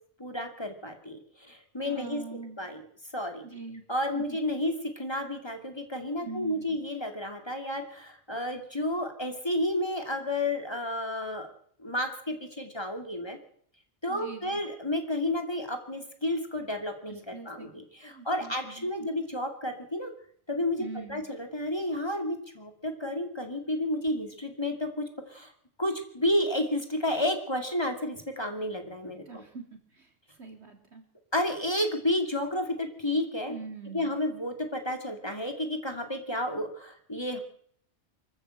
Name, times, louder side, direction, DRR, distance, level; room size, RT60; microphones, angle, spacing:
voice 1, 0.2-2.2 2.6-2.8 3.1-3.4 3.9-11.5 11.8-13.4 14.0-20.1 20.5-25.5 25.8-29.4 31.3-33.5 33.9-37.4, left 1 dB, 25° left, 5 dB, 2.6 m, -31 dB
voice 2, 1.8-2.6 3.4-3.8 4.1-4.2 6.2-6.8 14.1-14.6 17.3-17.7 18.1-19.1 20.8-21.2 29.2-29.6 29.9-31.0 33.5-34.1, right 4 dB, 75° right, 5 dB, 3.5 m, -43 dB
24.0 x 14.5 x 7.8 m, 0.63 s
omnidirectional pair, 1.1 m